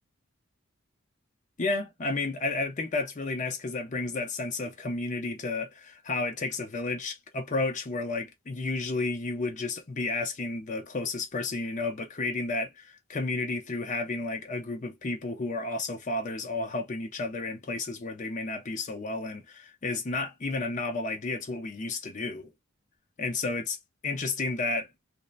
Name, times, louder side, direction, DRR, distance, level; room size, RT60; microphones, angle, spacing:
voice 1, 1.6-22.5 23.2-23.8 24.0-24.9, left 3 dB, 40° left, 0.6 m, -32 dB
2.7 x 2.0 x 2.3 m
head